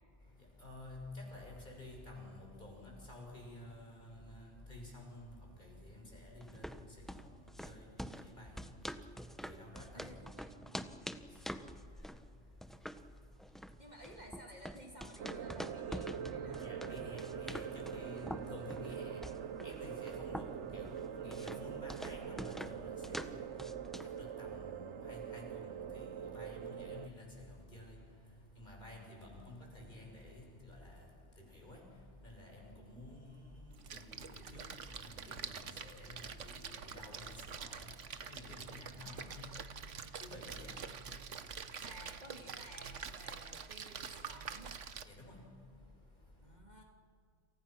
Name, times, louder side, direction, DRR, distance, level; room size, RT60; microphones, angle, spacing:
voice 1, 0.2-10.6 11.1-13.9 16.1-41.9 45.0-46.6, left 1 dB, 40° left, 0 dB, 6.4 m, -52 dB
sound 1, 6.4-24.2, equal, ahead, 0.7 m, -47 dB
voice 2, 9.9-10.8 13.8-16.9 39.1-40.2 41.8-44.8 46.4-46.8, right 1 dB, 35° right, 1 dB, 2.6 m, -55 dB
sound 2, 15.2-27.1, right 8 dB, 75° right, 1.1 m, -44 dB
Splash splatter, 33.7-45.0, right 6 dB, 90° right, 1.4 m, -46 dB
29.5 x 28.0 x 6.0 m, 2.2 s
omnidirectional pair, 1.2 m